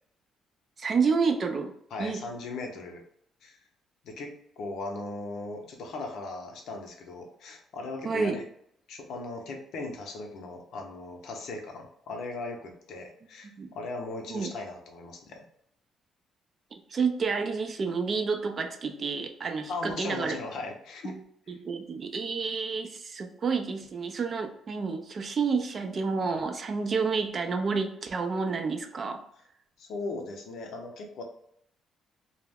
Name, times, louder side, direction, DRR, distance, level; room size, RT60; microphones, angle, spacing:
voice 1, 0.8-1.7 2.0-2.2 8.0-8.4 13.6-13.7 14.3-14.5 16.7-20.3 21.0-21.2 21.5-29.2, right 5 dB, 40° right, 6 dB, 0.3 m, -29 dB
voice 2, 1.9-3.0 3.4-3.6 4.0-8.5 8.9-15.5 19.7-21.2 29.8-31.2, left 3 dB, 70° left, 3 dB, 0.6 m, -38 dB
2.3 x 2.0 x 3.3 m, 0.70 s
cardioid pair, 125°, 0 cm